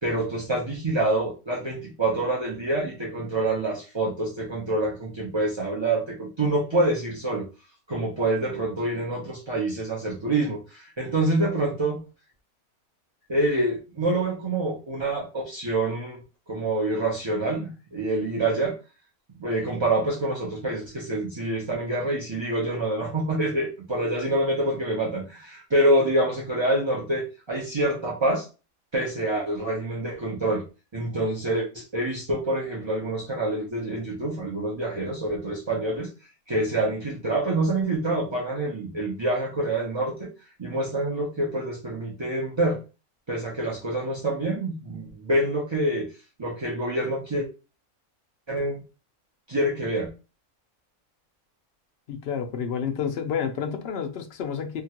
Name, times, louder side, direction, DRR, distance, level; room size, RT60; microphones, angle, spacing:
voice 1, 0.0-7.5 7.9-12.0 13.3-16.2 16.5-18.7 19.4-28.5 28.9-30.6 30.9-36.1 36.5-40.3 40.6-42.8 43.3-46.1 46.4-47.5 48.5-48.8 49.5-50.1, right 1 dB, 30° right, 0.5 m, -26 dB
voice 2, 52.1-54.8, left 7 dB, 65° left, 0.6 m, -29 dB
2.9 x 2.2 x 2.8 m
omnidirectional pair, 1.5 m